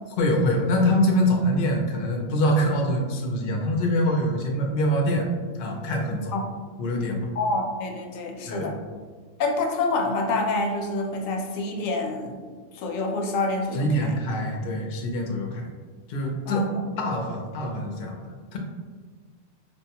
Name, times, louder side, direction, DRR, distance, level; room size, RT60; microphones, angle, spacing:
voice 1, 0.2-5.3 5.6-6.3 6.8-7.3 8.5-8.7 13.7-15.7 16.1-16.6 17.0-18.2 18.5-18.6, equal, 55° left, 1 dB, 0.6 m, -24 dB
voice 2, 7.4-8.8 9.4-12.4 12.7-14.1 16.5-16.8, left 2 dB, 85° left, 2 dB, 1.0 m, -27 dB
4.6 x 2.2 x 2.8 m, 1.5 s
omnidirectional pair, 1.3 m